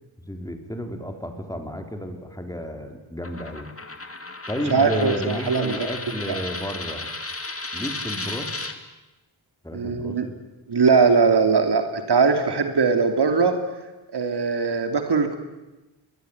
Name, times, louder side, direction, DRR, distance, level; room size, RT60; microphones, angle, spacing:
voice 1, 0.2-3.7 4.5-7.1 7.7-8.5 9.6-10.2, equal, 10° left, 5 dB, 4.4 m, -32 dB
Coin (dropping), 3.2-8.7, left 2 dB, 30° left, 2.9 m, -34 dB
voice 2, 4.7-5.9 6.3-6.4 9.7-10.3 10.7-13.6 14.1-15.4, right 5 dB, 60° right, 7 dB, 3.0 m, -20 dB
24.0 x 20.5 x 9.9 m, 1.1 s
cardioid pair, 65°, 46 cm